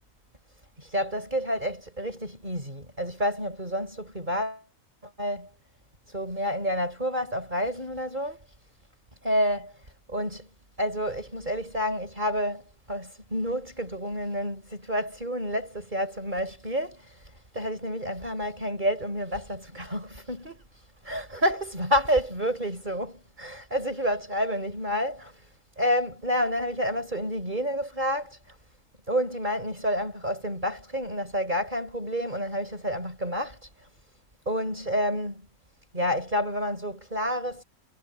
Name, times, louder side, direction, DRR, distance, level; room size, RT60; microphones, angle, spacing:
voice 1, 0.8-4.6 5.0-5.5 6.1-8.4 9.2-9.8 10.1-10.5 10.8-17.2 17.5-20.6 21.0-25.4 25.8-28.6 29.1-33.6 34.5-35.5 35.9-37.6, equal, 30° right, 5.1 m, -29 dB
omnidirectional pair, 1.5 m